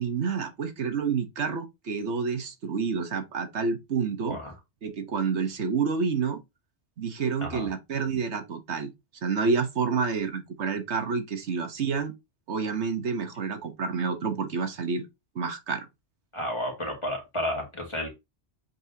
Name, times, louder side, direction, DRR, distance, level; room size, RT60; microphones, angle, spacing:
voice 1, 0.0-4.4 4.8-6.4 7.0-8.9 9.2-12.1 12.5-15.1 15.3-15.9, right 5 dB, 85° right, 1.4 m, -29 dB
voice 2, 16.3-18.1, left 1 dB, 25° left, 2.3 m, -32 dB
7.7 x 4.3 x 2.8 m
omnidirectional pair, 1.1 m